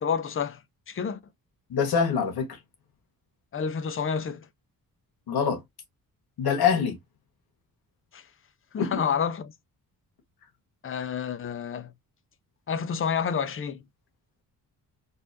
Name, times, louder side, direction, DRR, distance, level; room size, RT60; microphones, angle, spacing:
voice 1, 0.0-0.6 0.9-1.2 3.5-4.4 8.1-8.2 8.7-9.5 10.8-11.9 12.7-13.8, left 6 dB, 35° left, 0.5 m, -29 dB
voice 2, 1.7-2.6 5.3-5.6 6.4-7.0 8.8-9.0, left 6 dB, 80° left, 1.3 m, -24 dB
4.0 x 2.5 x 2.6 m
wide cardioid pair, 125°, 37 cm